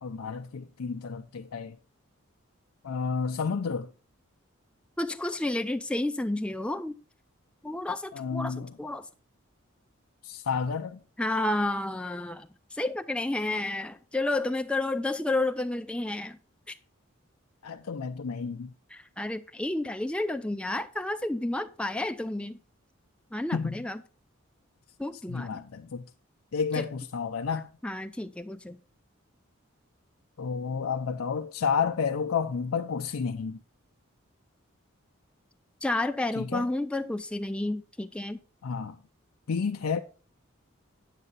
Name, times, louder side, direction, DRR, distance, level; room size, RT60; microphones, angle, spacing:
voice 1, 0.0-1.8 2.8-3.9 8.1-8.8 10.2-11.0 17.6-18.7 23.5-23.9 25.3-26.0 26.5-27.7 30.4-33.6 36.4-36.7 38.6-39.0 39.5-40.0, left 5 dB, 90° left, 0.5 m, -31 dB
voice 2, 5.0-6.9 7.6-9.0 11.2-16.4 16.7-16.8 18.9-22.6 23.3-24.0 25.0-25.6 26.8-26.9 27.8-28.8 35.8-38.4, left 2 dB, 5° left, 0.4 m, -31 dB
8.8 x 7.5 x 4.0 m
head